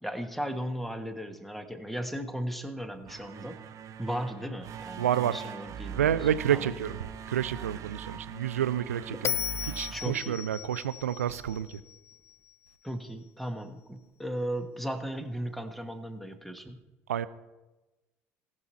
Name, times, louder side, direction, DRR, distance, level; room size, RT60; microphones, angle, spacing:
voice 1, 0.0-3.6 4.0-6.7 9.2-9.4 9.9-10.4 12.8-16.8, equal, ahead, 1.3 m, -36 dB
sound 1, 2.9-10.9, right 8 dB, 45° right, 0.8 m, -42 dB
voice 2, 5.0-5.4 5.9-7.0 7.3-9.4 9.6-11.7 17.1-17.3, right 10 dB, 80° right, 0.4 m, -29 dB
Bell, 9.2-12.5, left 9 dB, 35° left, 0.3 m, -36 dB
18.5 x 6.1 x 4.3 m
figure-of-eight pair, 60°, 8 cm